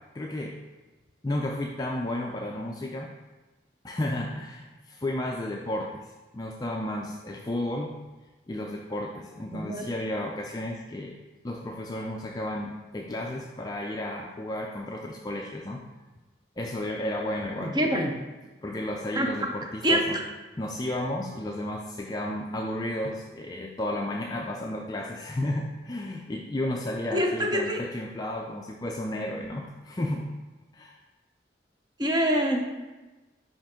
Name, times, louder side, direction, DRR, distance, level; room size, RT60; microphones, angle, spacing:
voice 1, 0.1-0.5 1.2-3.1 3.8-6.0 6.3-7.9 8.5-11.2 11.4-15.8 16.6-18.1 18.6-20.2 20.5-30.3 30.7-31.0, left 1 dB, 20° left, 0 dB, 0.3 m, -33 dB
voice 2, 9.5-9.9 17.6-18.1 19.2-19.3 19.8-20.0 27.1-27.8 32.0-32.6, equal, 25° right, 2 dB, 0.6 m, -25 dB
5.2 x 5.0 x 3.6 m, 1.2 s
head